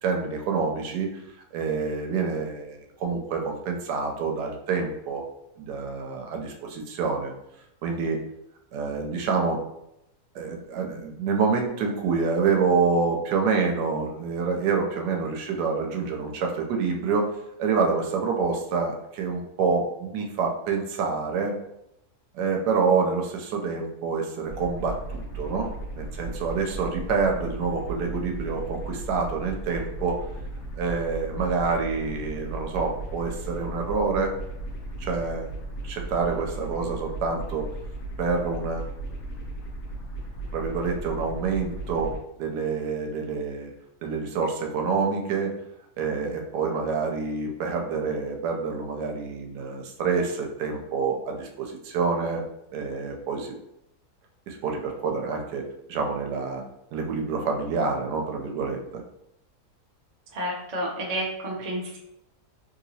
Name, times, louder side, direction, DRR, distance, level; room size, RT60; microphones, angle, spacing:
voice 1, 0.0-1.1 1.5-5.2 5.6-7.3 7.8-8.2 8.7-9.6 10.3-17.3 17.6-21.6 22.3-25.7 25.9-30.2 30.8-34.3 35.0-35.5 35.8-37.6 38.2-38.9 40.5-42.1 42.4-43.7 44.0-45.5 46.0-52.4 52.7-53.5 54.5-56.6 56.9-59.0, right 5 dB, 85° right, 2 dB, 1.2 m, -27 dB
sound 1, 24.5-42.2, right 2 dB, 85° left, 1.2 m, -36 dB
voice 2, 60.3-62.0, right 1 dB, 55° right, -2 dB, 0.4 m, -30 dB
3.3 x 2.9 x 2.7 m, 0.82 s
omnidirectional pair, 1.7 m